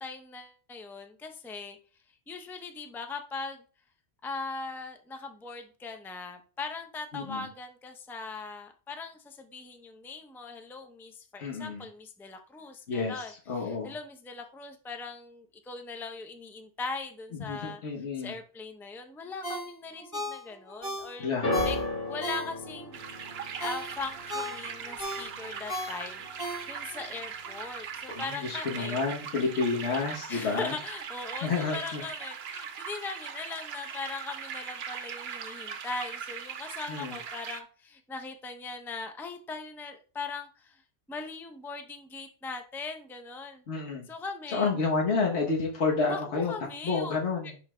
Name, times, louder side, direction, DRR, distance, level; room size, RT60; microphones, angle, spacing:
voice 1, 0.0-1.8 2.3-3.6 4.2-17.8 18.2-21.3 21.6-21.8 22.1-23.0 23.6-29.0 30.3-40.8 41.1-43.6 44.1-44.7 46.0-47.2 47.4-47.5, left 4 dB, 5° left, 5 dB, 0.4 m, -40 dB
voice 2, 7.1-7.5 11.4-11.8 12.9-13.9 17.5-18.3 21.2-21.5 28.1-30.7 31.4-32.0 36.9-37.2 43.7-44.1 44.5-46.5 46.8-47.5, left 4 dB, 75° left, -1 dB, 1.3 m, -30 dB
Ringtone, 19.4-22.9 23.3-27.1 27.4-27.5, equal, 30° left, 2.3 m, -37 dB
sound 1, 21.4-27.7 28.0-28.6 29.4-29.5, left 2 dB, 60° left, 2.3 m, -37 dB
sound 2, 22.9-37.6, right 7 dB, 65° right, 0.9 m, -40 dB
11.0 x 3.9 x 2.2 m, 0.38 s
omnidirectional pair, 1.2 m